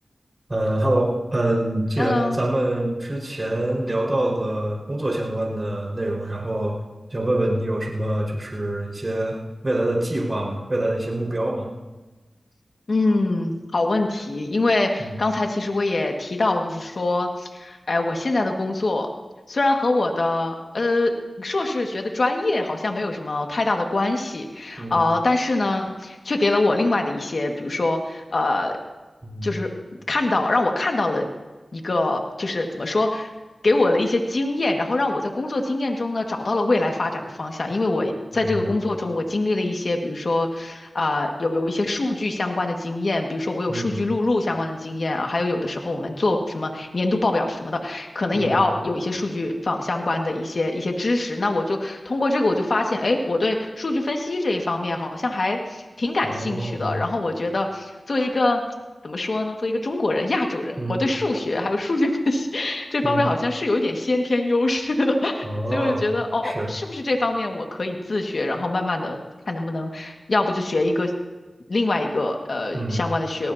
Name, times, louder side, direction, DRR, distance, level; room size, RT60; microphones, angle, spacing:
voice 1, 0.5-6.8 7.1-9.4 9.6-11.7 15.0-15.1 24.8-25.0 29.2-29.5 38.3-38.7 43.7-44.0 48.3-48.6 56.2-57.0 60.8-61.0 63.0-63.2 65.4-66.1 66.4-66.7 72.7-73.0, right 1 dB, 35° right, -3 dB, 5.0 m, -25 dB
voice 2, 2.0-2.4 12.9-19.1 19.5-28.8 29.4-29.7 30.1-31.3 31.7-33.3 33.6-58.6 59.0-65.5 65.7-69.2 69.5-71.1 71.7-73.5, left 2 dB, 65° left, 3 dB, 1.9 m, -24 dB
20.0 x 18.0 x 2.9 m, 1.2 s
cardioid pair, 45°, 0 cm